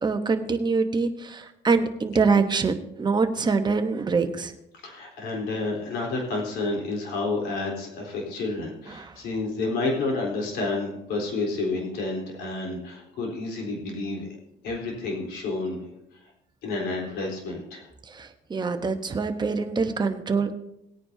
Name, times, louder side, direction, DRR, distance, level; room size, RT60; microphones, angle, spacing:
voice 1, 0.0-4.5 8.9-9.1 18.1-20.6, right 4 dB, 25° right, 7 dB, 1.0 m, -25 dB
voice 2, 4.8-14.3 14.6-16.3 16.6-17.9, left 3 dB, 80° left, -2 dB, 3.8 m, -30 dB
19.0 x 9.5 x 2.8 m, 0.85 s
cardioid pair, 110°, 17 cm